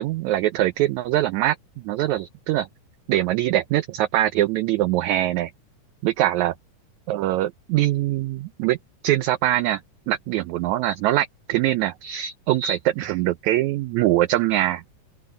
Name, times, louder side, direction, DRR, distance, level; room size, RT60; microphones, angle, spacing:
voice 1, 0.0-1.6 1.8-2.7 3.1-5.5 6.0-6.5 7.1-8.8 9.0-9.8 10.1-14.8, right 14 dB, 85° right, 1.6 m, -23 dB
open air
omnidirectional pair, 4.0 m